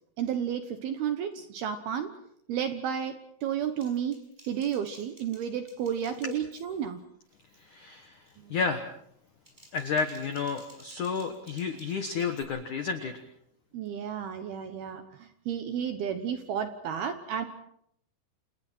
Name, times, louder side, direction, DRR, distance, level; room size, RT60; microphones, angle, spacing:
voice 1, 0.2-2.1 2.5-4.2 4.5-7.0 8.4-8.6 13.7-17.5, right 8 dB, 70° right, 8 dB, 2.4 m, -32 dB
Typing, 3.8-7.0 7.3-7.7 8.0-8.4 9.2-12.4, right 1 dB, 10° right, 6.6 m, -57 dB
voice 2, 7.6-8.2 8.5-8.8 9.7-13.2, left 5 dB, 90° left, 7 dB, 1.7 m, -31 dB
29.0 x 28.5 x 4.5 m, 0.70 s
omnidirectional pair, 5.8 m